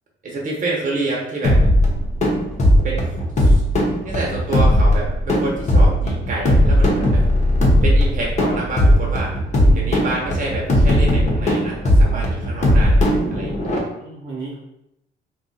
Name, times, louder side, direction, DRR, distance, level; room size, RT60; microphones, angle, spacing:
voice 1, 0.2-1.6 2.8-3.6 4.0-7.2 7.8-9.3 9.7-13.0 13.3-13.8, right 2 dB, 40° right, -3 dB, 1.0 m, -27 dB
sound 1, 1.4-13.8, equal, 35° left, 0.9 m, -17 dB
voice 2, 9.6-10.0 12.1-12.2 13.2-13.4 14.0-14.6, right 3 dB, 65° right, -8 dB, 1.0 m, -34 dB
2.6 x 2.4 x 4.0 m, 0.82 s
cardioid pair, 90°, 20 cm